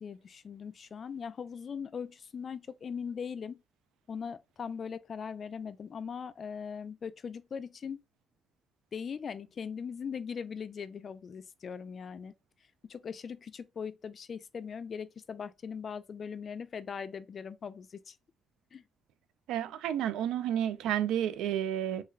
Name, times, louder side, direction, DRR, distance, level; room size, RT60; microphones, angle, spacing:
voice 1, 0.0-3.6 4.1-8.0 8.9-12.3 12.9-18.2 18.7-18.8, left 6 dB, 50° left, 0.3 m, -40 dB
voice 2, 19.5-22.0, right 10 dB, 90° right, 0.4 m, -31 dB
3.2 x 2.3 x 3.1 m
cardioid pair, 90°, 0 cm